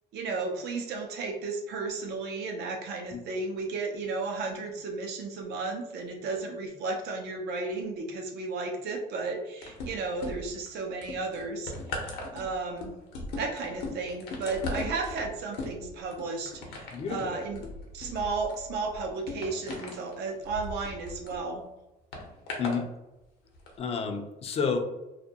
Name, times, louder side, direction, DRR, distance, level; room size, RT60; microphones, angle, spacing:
voice 1, 0.1-12.9 13.4-17.7 17.9-21.6, right 3 dB, 75° right, 2 dB, 0.6 m, -34 dB
sound 1, 9.6-10.7 11.0-21.4 22.1-22.8 23.5-23.7, left 2 dB, 80° left, 0.7 m, -38 dB
voice 2, 16.9-17.3 22.6-22.9 23.8-24.8, left 5 dB, 35° left, 6 dB, 0.4 m, -30 dB
2.3 x 2.2 x 2.7 m, 0.98 s
cardioid pair, 110°, 17 cm